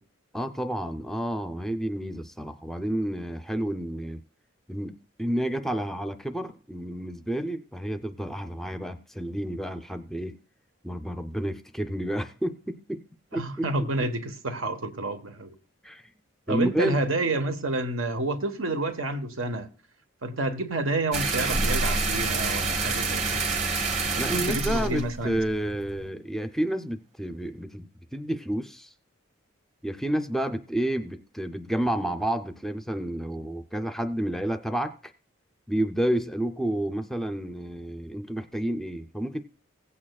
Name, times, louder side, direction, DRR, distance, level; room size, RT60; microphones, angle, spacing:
voice 1, 0.3-4.2 4.7-10.4 10.8-13.0 13.3-13.9 15.8-16.0 16.5-17.0 24.2-28.9 29.8-35.1 35.7-39.5, right 1 dB, ahead, 0.5 m, -30 dB
voice 2, 13.3-15.5 16.5-19.7 20.2-23.7 24.1-25.4, right 2 dB, 75° right, 1.3 m, -29 dB
sound 1, 21.1-26.0, right 3 dB, 35° right, 1.3 m, -27 dB
16.5 x 8.6 x 2.3 m
head